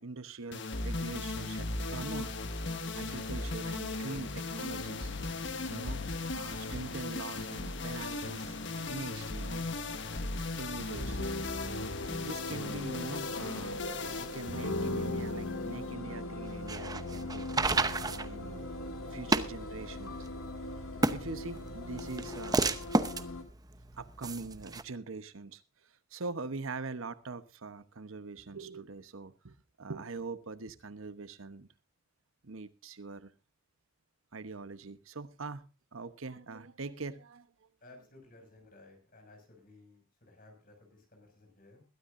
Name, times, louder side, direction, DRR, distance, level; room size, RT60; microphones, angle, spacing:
voice 1, 0.0-2.3 3.0-5.2 5.7-6.1 6.3-9.7 10.6-11.2 12.2-13.8 14.1-17.5 18.1-18.6 19.1-20.2 21.1-22.7 24.0-25.6 26.1-31.7 32.4-33.3 34.3-37.5, right 3 dB, 80° right, 12 dB, 1.0 m, -43 dB
sound 1, 0.5-15.9, left 3 dB, 60° left, 1.3 m, -37 dB
sound 2, 5.6-23.4, left 2 dB, 80° left, 2.2 m, -40 dB
sound 3, 16.5-24.8, right 3 dB, 20° right, 0.8 m, -32 dB
voice 2, 37.8-41.8, left 2 dB, 45° left, 4 dB, 6.3 m, -57 dB
21.0 x 13.0 x 2.6 m, 0.30 s
head